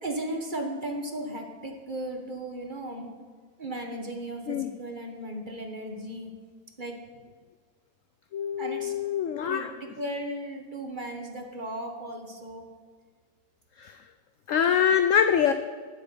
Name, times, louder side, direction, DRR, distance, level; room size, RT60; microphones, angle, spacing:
voice 1, 0.0-3.1 3.6-6.3 6.8-7.0 8.6-8.9 9.4-12.7, right 1 dB, 30° right, 3 dB, 1.3 m, -36 dB
voice 2, 8.3-9.7 13.8-14.0 14.5-15.5, left 8 dB, 75° left, 10 dB, 0.7 m, -24 dB
9.4 x 8.5 x 9.3 m, 1.5 s
omnidirectional pair, 2.0 m